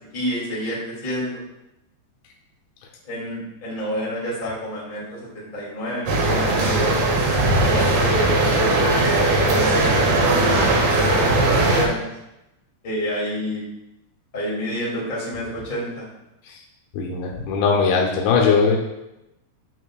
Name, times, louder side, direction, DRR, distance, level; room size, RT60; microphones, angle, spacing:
voice 1, 0.1-1.4 3.0-12.1 12.8-13.6 14.3-16.1, equal, 25° left, -7 dB, 1.1 m, -29 dB
sound 1, 6.1-11.8, right 2 dB, 75° right, 2.0 m, -19 dB
voice 2, 16.9-18.8, left 5 dB, 75° left, -1 dB, 3.1 m, -19 dB
9.0 x 6.7 x 2.4 m, 0.91 s
omnidirectional pair, 5.5 m